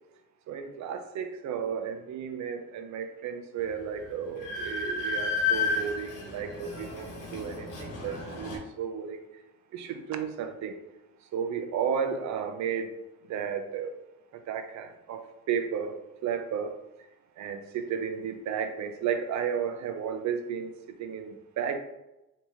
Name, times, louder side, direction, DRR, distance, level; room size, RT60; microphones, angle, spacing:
voice 1, 0.5-9.2 9.7-10.8 11.3-12.9 13.3-13.9 14.5-15.2 15.5-16.0 16.2-16.8 17.4-20.7 21.0-21.8, right 7 dB, 70° right, 7 dB, 0.5 m, -33 dB
Train, 3.6-3.7 4.0-8.6, left 4 dB, 90° left, 1.0 m, -32 dB
3.4 x 2.8 x 2.9 m, 0.94 s
cardioid pair, 90°, 30 cm